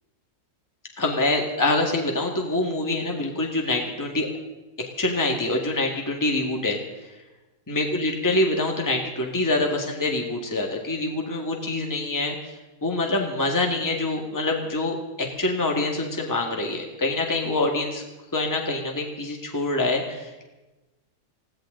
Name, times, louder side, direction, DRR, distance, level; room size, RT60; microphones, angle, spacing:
voice 1, 1.0-4.3 5.0-7.1 7.7-18.0 18.3-20.4, left 2 dB, 10° left, 1 dB, 1.9 m, -25 dB
20.0 x 16.5 x 3.9 m, 1.1 s
omnidirectional pair, 1.7 m